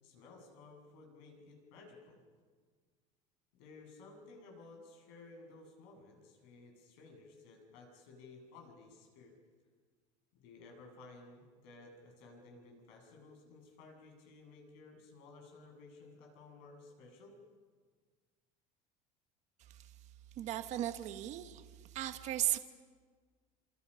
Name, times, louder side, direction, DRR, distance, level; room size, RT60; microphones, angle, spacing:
voice 1, 0.0-2.2 3.5-9.3 10.4-17.3, left 3 dB, 80° left, 2 dB, 7.9 m, -56 dB
voice 2, 20.4-21.6 21.9-22.6, right 13 dB, 45° right, 8 dB, 1.3 m, -36 dB
28.5 x 27.5 x 5.7 m, 1.5 s
cardioid pair, 155°, 16 cm